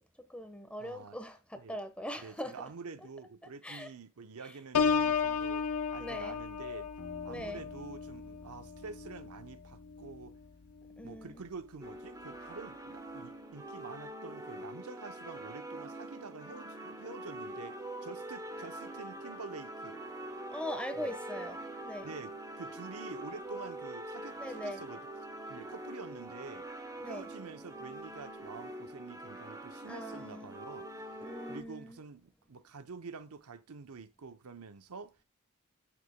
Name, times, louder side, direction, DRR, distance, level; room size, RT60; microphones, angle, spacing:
voice 1, 0.0-2.7 3.6-3.9 6.0-6.4 7.3-7.6 11.0-11.4 20.5-22.1 24.4-24.9 27.0-27.3 29.9-30.5 31.2-32.0, equal, 5° left, 1.1 m, -41 dB
voice 2, 0.8-1.2 1.6-1.8 2.2-6.9 7.2-10.4 11.0-20.0 20.9-21.2 22.0-25.0 25.5-26.7 27.0-35.2, right 4 dB, 80° right, 0.8 m, -48 dB
Piano, 4.7-10.4 10.8-11.2, left 6 dB, 75° left, 0.5 m, -34 dB
sound 1, 7.0-11.6, left 1 dB, 55° left, 1.0 m, -55 dB
sound 2, 11.8-31.6, right 1 dB, 15° right, 1.0 m, -44 dB
13.5 x 6.8 x 2.2 m
head